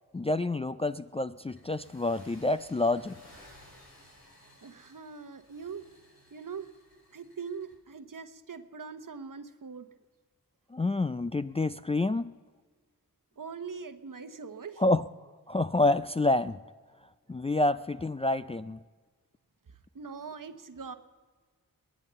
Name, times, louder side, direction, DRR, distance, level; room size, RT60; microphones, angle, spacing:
voice 1, 0.1-3.2 10.7-12.3 14.8-15.0 15.5-16.6 17.3-18.8, left 2 dB, 15° left, 11 dB, 0.4 m, -28 dB
sound 1, 1.5-7.7, left 1 dB, 80° left, 6.5 m, -57 dB
voice 2, 4.6-5.9 6.3-6.7 7.1-9.9 13.4-14.8 19.7-20.9, right 5 dB, 60° right, 10 dB, 1.0 m, -42 dB
21.5 x 9.0 x 6.8 m, 1.5 s
cardioid pair, 40°, 37 cm